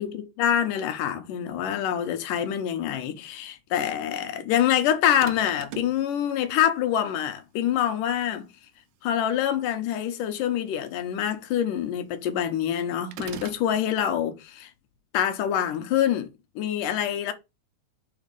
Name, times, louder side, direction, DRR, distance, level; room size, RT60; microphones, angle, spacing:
voice 1, 0.0-8.5 9.0-14.7 15.1-16.3 16.6-17.3, left 10 dB, 80° left, 2.5 m, -26 dB
sound 1, 5.2-6.0 13.1-13.7, right 9 dB, 75° right, 2.0 m, -39 dB
6.5 x 4.1 x 5.2 m
omnidirectional pair, 3.8 m